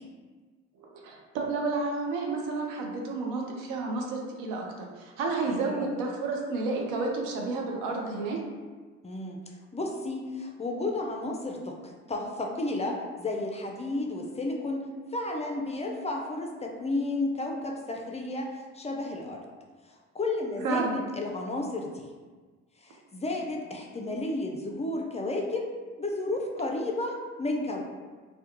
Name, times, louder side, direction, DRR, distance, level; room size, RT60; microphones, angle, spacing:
voice 1, 0.8-8.4 20.6-21.0, right 3 dB, 75° right, 0 dB, 0.6 m, -31 dB
voice 2, 5.5-5.9 9.0-9.4 9.7-19.4 19.8-22.1 22.8-25.7 26.0-27.9, left 2 dB, 20° left, 1 dB, 0.4 m, -32 dB
2.3 x 2.2 x 2.8 m, 1.4 s
supercardioid pair, 60°, 32 cm